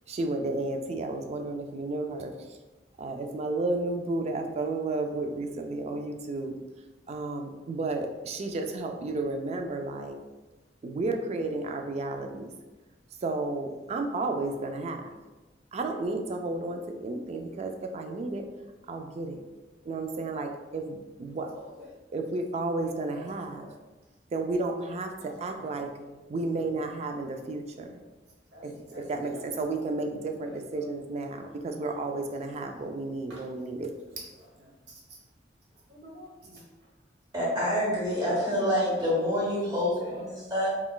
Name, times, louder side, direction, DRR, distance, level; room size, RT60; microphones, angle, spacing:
voice 1, 0.1-2.3 3.0-6.5 7.1-10.2 10.8-12.5 13.2-15.0 15.7-18.4 18.9-19.4 19.9-21.5 22.1-23.7 24.3-25.9 26.3-27.9 28.6-28.7 29.1-33.9, right 2 dB, 40° right, 5 dB, 0.3 m, -32 dB
voice 2, 21.6-21.9 23.1-23.8 25.2-26.2 26.7-26.8 28.5-29.7 30.4-30.9 31.3-31.6 32.0-32.9 33.3-33.6 34.1-35.0 35.9-36.6 38.3-39.0 40.0-40.2, equal, 70° right, -4 dB, 0.9 m, -47 dB
voice 3, 37.3-40.7, equal, 20° right, -6 dB, 1.0 m, -27 dB
3.7 x 2.3 x 2.3 m, 1.1 s
head